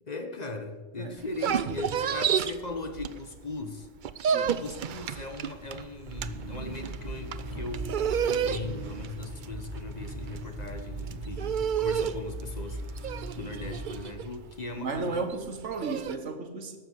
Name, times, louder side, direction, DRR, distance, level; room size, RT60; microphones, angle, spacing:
voice 1, 0.0-3.9 4.6-15.3 15.8-16.0, left 3 dB, 40° left, 1.1 m, -39 dB
sound 1, 1.2-3.5 3.8-16.2, right 8 dB, 55° right, 0.6 m, -31 dB
voice 2, 4.3-4.6 14.8-16.8, right 4 dB, 80° right, 1.6 m, -34 dB
sound 2, 6.1-14.1, right 1 dB, 40° right, 1.9 m, -39 dB
12.5 x 7.1 x 8.0 m
omnidirectional pair, 1.2 m